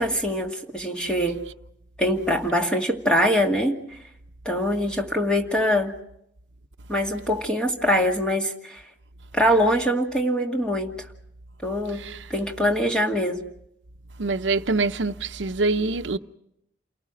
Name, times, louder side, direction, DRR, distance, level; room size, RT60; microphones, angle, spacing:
voice 1, 0.0-1.4 2.0-4.0 4.5-5.9 6.9-8.8 9.3-10.9 11.6-12.0 12.3-13.4, equal, 5° left, 2.2 m, -23 dB
voice 2, 14.2-16.2, right 3 dB, 90° right, 0.8 m, -25 dB
29.0 x 19.0 x 6.3 m
head